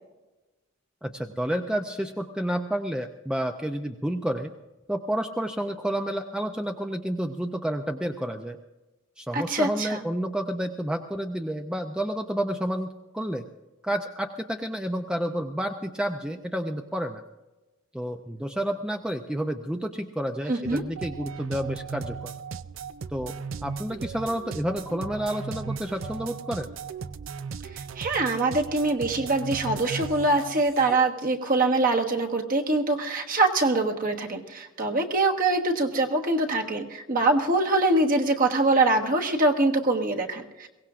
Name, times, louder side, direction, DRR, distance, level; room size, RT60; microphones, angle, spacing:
voice 1, 1.0-4.5 4.9-8.6 9.2-13.4 13.8-17.2 17.9-22.3 23.1-23.3 23.6-26.7, right 1 dB, 5° right, 5 dB, 0.5 m, -30 dB
voice 2, 9.3-10.0 20.5-20.8 27.7-40.7, right 2 dB, 40° right, 3 dB, 1.3 m, -24 dB
sound 1, 20.6-30.9, right 5 dB, 65° right, 0.5 m, -36 dB
22.5 x 17.5 x 2.5 m, 1.1 s
head